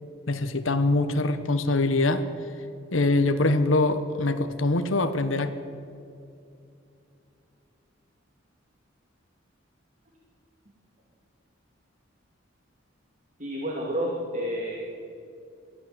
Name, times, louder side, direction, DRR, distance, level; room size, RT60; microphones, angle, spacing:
voice 1, 0.3-2.2 2.9-5.5, left 2 dB, 85° left, 9 dB, 1.2 m, -23 dB
voice 2, 13.4-14.7, equal, 40° right, -2 dB, 2.7 m, -30 dB
22.5 x 15.0 x 7.9 m, 2.6 s
head